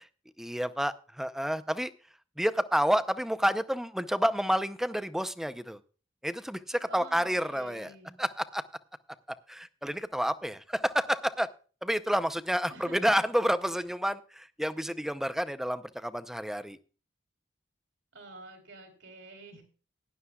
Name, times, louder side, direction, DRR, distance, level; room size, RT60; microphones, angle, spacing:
voice 1, 0.4-1.9 2.4-5.8 6.2-7.9 8.2-8.6 9.5-11.5 11.8-16.8, equal, ahead, 12 dB, 0.6 m, -29 dB
voice 2, 6.9-8.2 12.7-13.2 18.1-19.6, right 2 dB, 75° right, 4 dB, 3.4 m, -48 dB
17.0 x 11.0 x 2.3 m, 0.38 s
head